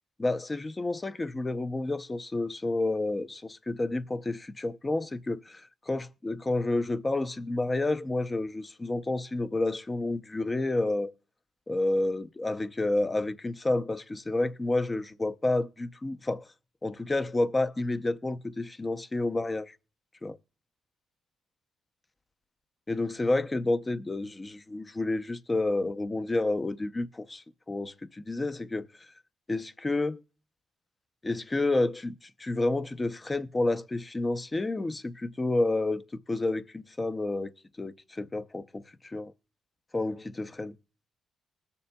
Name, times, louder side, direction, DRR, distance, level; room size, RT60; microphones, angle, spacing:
voice 1, 0.2-11.1 11.7-16.5 16.8-19.7 20.2-20.4 22.9-28.9 29.5-30.2 31.2-37.5 37.8-39.3 39.9-40.8, left 2 dB, 20° left, 0.6 m, -30 dB
20.5 x 6.9 x 2.2 m
cardioid pair, 90°, 0 cm